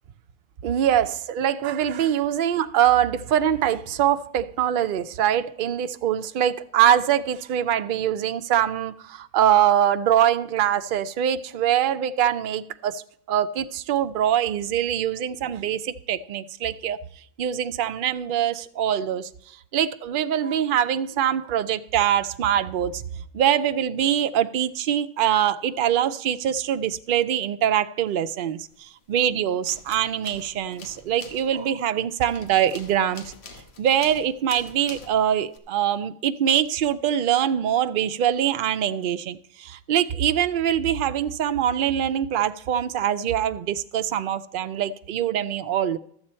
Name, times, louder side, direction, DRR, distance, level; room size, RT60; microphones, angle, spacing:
voice 1, 0.6-17.0 17.4-19.3 19.7-23.0 23.3-33.3 33.8-46.0, right 10 dB, 60° right, 0.7 m, -23 dB
sound 1, 28.7-29.3 29.5-35.6, left 4 dB, 85° left, 1.4 m, -45 dB
12.5 x 8.0 x 4.3 m
omnidirectional pair, 1.1 m